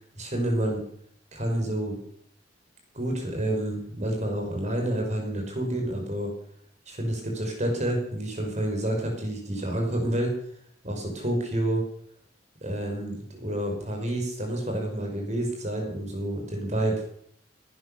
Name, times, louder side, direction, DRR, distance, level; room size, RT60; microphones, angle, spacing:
voice 1, 0.2-0.8 1.3-2.0 2.9-6.3 6.9-10.3 10.8-11.8 12.6-17.1, right 1 dB, 40° right, 2 dB, 5.6 m, -29 dB
18.0 x 11.5 x 6.8 m, 0.64 s
head